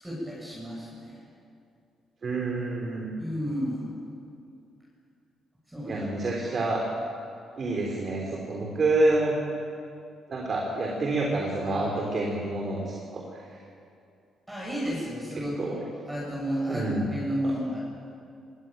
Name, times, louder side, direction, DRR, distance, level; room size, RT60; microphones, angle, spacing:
voice 1, 0.0-1.2 3.2-3.9 5.7-6.0 14.5-15.8 16.0-17.8, equal, 10° right, -5 dB, 7.3 m, -32 dB
voice 2, 2.2-3.1 5.9-6.8 7.6-9.4 10.3-13.6 15.3-15.8 16.7-17.1 17.4-17.5, right 2 dB, 45° right, 0 dB, 3.3 m, -28 dB
20.5 x 18.0 x 9.1 m, 2.5 s
cardioid pair, 90°, 0 cm